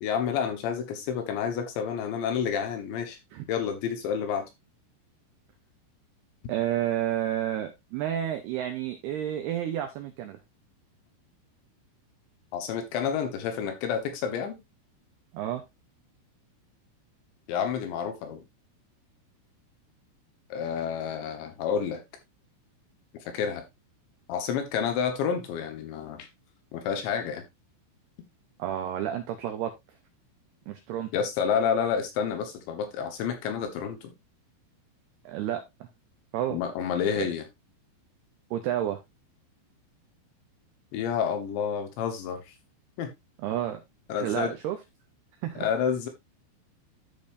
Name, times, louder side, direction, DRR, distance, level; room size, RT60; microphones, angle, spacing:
voice 1, 0.0-3.2 3.5-4.5 12.5-14.6 17.5-18.4 20.5-22.0 23.3-23.6 24.3-26.3 26.7-27.4 31.1-34.1 36.5-37.4 40.9-42.5 43.0-43.1 44.1-44.5 45.6-46.1, left 7 dB, 70° left, 3.3 m, -29 dB
voice 2, 6.5-10.4 15.3-15.6 28.6-29.7 30.7-31.1 35.3-35.9 36.3-36.6 37.1-37.3 38.5-39.0 43.4-43.8 44.2-44.8 45.4-45.7, right 11 dB, 85° right, 2.3 m, -30 dB
13.0 x 5.4 x 2.6 m
omnidirectional pair, 5.8 m